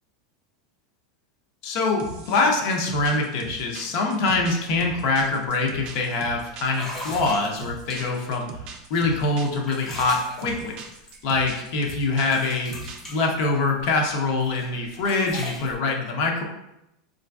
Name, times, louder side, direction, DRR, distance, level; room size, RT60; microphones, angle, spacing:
voice 1, 1.6-8.5 8.9-10.8 11.2-16.4, left 3 dB, 50° left, 1 dB, 0.5 m, -24 dB
sound 1, 2.0-13.2, right 4 dB, 35° right, 0.4 m, -39 dB
sound 2, 4.7-4.8 5.2-5.5 6.1-6.2 6.7-8.3 8.9-11.6 11.9-14.0 14.4-15.7, left 1 dB, 10° left, 0.7 m, -40 dB
3.7 x 2.5 x 2.2 m, 0.87 s
supercardioid pair, 155°, 3 cm